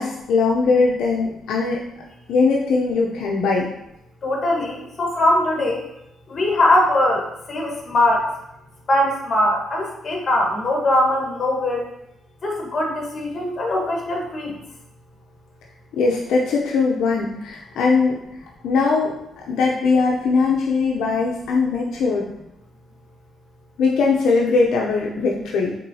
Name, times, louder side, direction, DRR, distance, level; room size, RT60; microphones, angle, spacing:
voice 1, 0.0-1.8 2.3-3.7 15.9-18.2 18.6-19.2 19.5-22.3 23.8-25.8, left 4 dB, 80° left, -2 dB, 0.6 m, -20 dB
voice 2, 4.2-5.9 6.3-8.4 8.9-11.9 12.4-14.5, left 1 dB, 40° left, 0 dB, 1.3 m, -21 dB
5.3 x 3.6 x 2.7 m, 0.82 s
cardioid pair, 90°, 0 cm